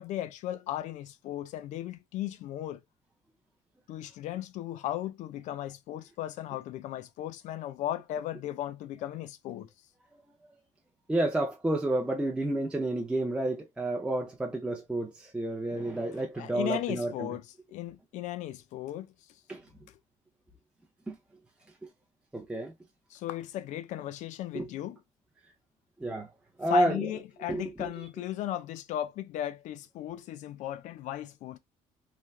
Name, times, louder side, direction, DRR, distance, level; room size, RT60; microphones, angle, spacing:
voice 1, 0.0-2.8 3.9-9.7 16.3-19.1 23.1-25.0 26.7-31.6, left 13 dB, 70° left, 0.5 m, -36 dB
voice 2, 11.1-17.3 19.5-19.7 21.1-21.2 21.8-21.9 22.3-22.7 24.5-24.7 26.0-26.3 26.6-27.1 27.5-27.9, right 1 dB, 10° right, 0.5 m, -30 dB
3.3 x 2.2 x 2.3 m
cardioid pair, 120°, 13 cm